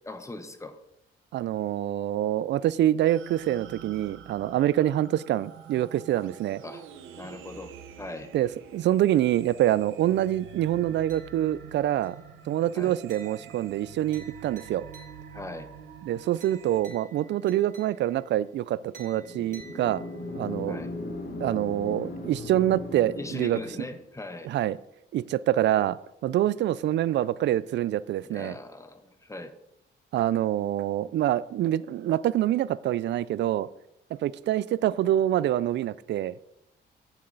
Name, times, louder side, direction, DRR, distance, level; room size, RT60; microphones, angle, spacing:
voice 1, 0.0-0.8 6.6-6.9 7.2-7.7 8.0-8.3 12.7-12.9 15.3-15.7 20.7-20.9 23.2-24.5 28.3-29.5, left 2 dB, 15° left, 9 dB, 0.9 m, -40 dB
voice 2, 1.3-6.6 8.3-14.8 16.0-20.0 20.3-20.8 21.4-23.6 24.4-24.8 25.1-26.0 26.2-28.6 30.1-33.7 34.2-36.3, right 12 dB, 65° right, 19 dB, 0.4 m, -26 dB
sound 1, 3.0-16.8, right 8 dB, 85° right, 0.9 m, -47 dB
sound 2, 11.1-11.7 12.0-12.4 13.1-15.5 16.4-18.3 18.9-20.4, right 4 dB, 40° right, 1.9 m, -53 dB
sound 3, 19.1-24.1, left 2 dB, 55° left, 1.8 m, -37 dB
8.8 x 7.2 x 3.9 m, 0.84 s
cardioid pair, 90°, 20 cm